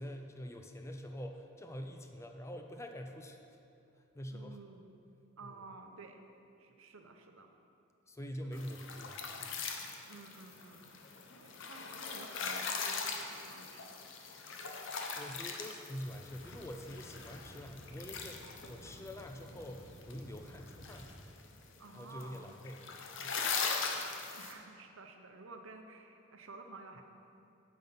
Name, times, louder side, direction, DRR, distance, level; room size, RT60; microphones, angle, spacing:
voice 1, 0.0-3.4 4.0-4.6 5.4-5.6 8.1-9.6 15.1-21.1 21.9-23.5, equal, 15° left, 4 dB, 0.4 m, -46 dB
voice 2, 4.3-5.0 5.4-6.2 6.6-7.5 8.4-8.6 10.1-10.9 11.4-14.0 21.8-22.6 24.4-27.0, right 3 dB, 70° right, 4 dB, 0.8 m, -53 dB
sound 1, 8.5-24.5, left 5 dB, 60° left, 0.8 m, -41 dB
sound 2, 16.0-21.1, equal, 5° right, 1.6 m, -54 dB
9.6 x 5.5 x 5.3 m, 2.6 s
head